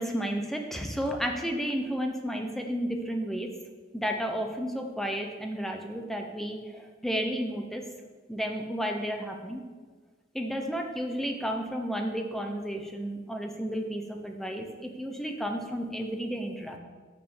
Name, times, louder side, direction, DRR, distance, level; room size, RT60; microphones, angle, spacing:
voice 1, 0.0-3.5 3.9-7.8 8.3-9.6 10.3-16.8, equal, ahead, 3 dB, 0.8 m, -32 dB
6.8 x 6.4 x 7.1 m, 1.4 s
head